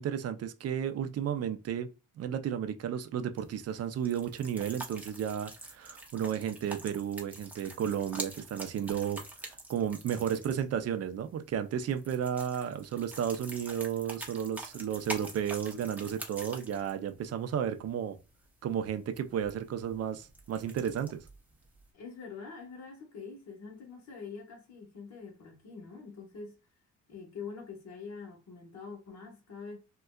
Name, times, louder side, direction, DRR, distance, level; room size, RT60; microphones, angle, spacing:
voice 1, 0.0-1.9 2.2-9.2 9.7-18.2 18.6-21.2, right 9 dB, 50° right, 0.5 m, -33 dB
sound 1, 3.3-21.9, right 2 dB, 5° right, 0.6 m, -46 dB
voice 2, 21.9-26.6 27.1-29.8, left 5 dB, 60° left, 1.1 m, -45 dB
3.6 x 2.2 x 2.2 m
cardioid pair, 120°, 31 cm